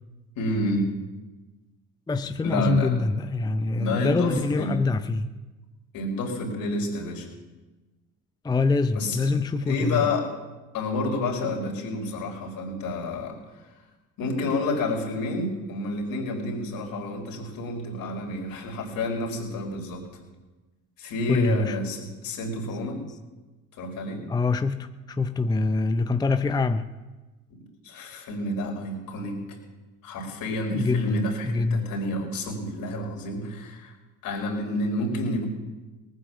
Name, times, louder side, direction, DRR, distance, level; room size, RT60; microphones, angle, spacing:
voice 1, 0.3-0.9 2.4-3.1 3.8-4.8 5.9-7.3 8.9-9.3 9.7-10.3 10.7-13.7 14.2-20.1 21.0-23.0 23.7-24.2 27.6-29.6 30.0-33.9 34.2-35.5, left 1 dB, 60° left, 0 dB, 4.5 m, -29 dB
voice 2, 2.1-5.3 8.4-10.1 21.3-21.8 24.3-26.9 30.7-31.8, left 3 dB, 10° left, 10 dB, 0.6 m, -25 dB
19.0 x 9.3 x 7.0 m, 1.2 s
hypercardioid pair, 65°, 38 cm